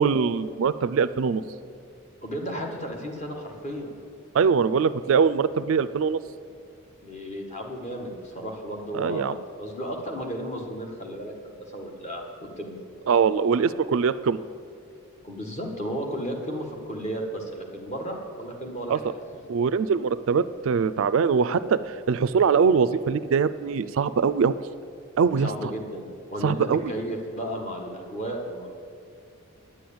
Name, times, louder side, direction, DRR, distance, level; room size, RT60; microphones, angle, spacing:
voice 1, 0.0-1.4 4.3-6.2 8.9-9.4 13.1-14.4 18.9-19.0 19.5-24.6 25.2-25.7 26.4-26.8, right 6 dB, 60° right, 15 dB, 0.3 m, -22 dB
voice 2, 2.2-3.9 7.0-12.2 12.6-12.8 15.2-19.0 25.4-26.6 26.9-28.7, equal, 30° left, 1 dB, 1.5 m, -34 dB
10.0 x 7.8 x 8.6 m, 2.3 s
head